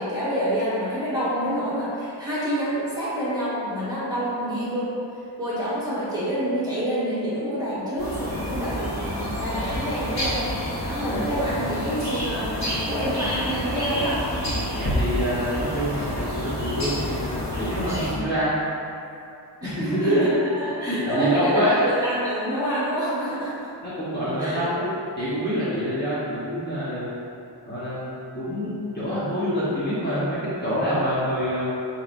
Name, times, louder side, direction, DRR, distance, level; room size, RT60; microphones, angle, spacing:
voice 1, 0.0-10.4 10.8-12.6 12.9-14.3 18.0-18.2 19.6-23.7 24.4-24.6, right 1 dB, 10° right, -11 dB, 1.4 m, -27 dB
sound 1, 8.0-18.1, left 1 dB, 40° left, 1.5 m, -28 dB
voice 2, 14.7-18.5 19.6-20.2 20.8-21.9 23.8-24.9 25.2-27.1 27.6-31.6, equal, 25° left, -12 dB, 1.1 m, -26 dB
4.6 x 3.0 x 2.6 m, 2.6 s
wide cardioid pair, 75°, 43 cm